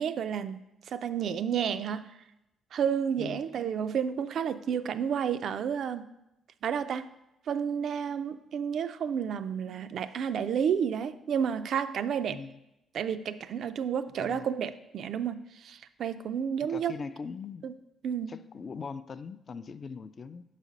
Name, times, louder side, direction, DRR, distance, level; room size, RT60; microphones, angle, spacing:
voice 1, 0.0-2.1 2.7-6.1 6.6-7.1 7.5-12.4 12.9-16.9 17.6-17.7 18.0-18.3, right 8 dB, 65° right, 0.3 m, -31 dB
voice 2, 12.3-12.6 14.2-14.5 16.7-17.7 18.3-20.4, left 5 dB, 45° left, 0.3 m, -41 dB
6.5 x 4.1 x 5.1 m
cardioid pair, 90°, 0 cm